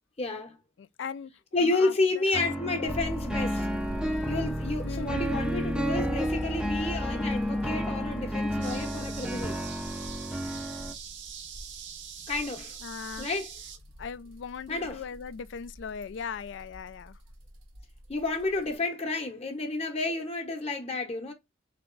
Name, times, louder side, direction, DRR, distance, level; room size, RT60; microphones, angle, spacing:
voice 1, 0.2-0.5 1.5-3.7 4.3-9.6 12.3-12.8 13.2-13.5 14.7-15.0 18.1-21.3, left 3 dB, 30° left, 0.8 m, -30 dB
voice 2, 0.8-1.3 1.6-3.0 4.8-5.5 12.8-13.3 14.0-17.2, left 6 dB, 60° left, 0.3 m, -39 dB
sound 1, 2.3-10.9, equal, 5° right, 0.4 m, -31 dB
sound 2, 2.9-18.7, equal, 75° right, 1.1 m, -42 dB
sound 3, 8.6-13.8, right 8 dB, 60° right, 0.7 m, -43 dB
4.0 x 3.4 x 3.7 m
head